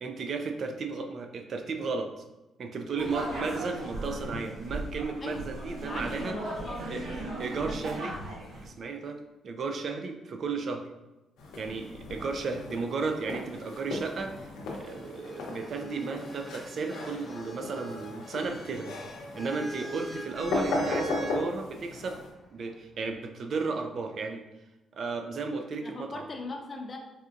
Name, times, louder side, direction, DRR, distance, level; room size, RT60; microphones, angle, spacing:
voice 1, 0.0-2.2 2.6-6.3 6.9-7.0 7.4-8.2 8.6-9.2 9.4-10.8 11.6-14.5 14.8-18.9 19.4-22.2 22.5-24.4 25.0-26.3, right 4 dB, 55° right, 5 dB, 0.4 m, -34 dB
sound 1, 3.0-8.7, right 1 dB, 75° right, 1.2 m, -37 dB
voice 2, 5.8-6.9 7.6-7.9 25.8-27.0, left 2 dB, 35° left, 3 dB, 0.5 m, -40 dB
sound 2, 11.4-22.3, left 2 dB, 90° left, 0.7 m, -37 dB
sound 3, 14.8-21.4 22.5-23.1, right 1 dB, 5° right, 0.6 m, -44 dB
4.2 x 2.4 x 2.5 m, 1.0 s
cardioid pair, 90°, 0 cm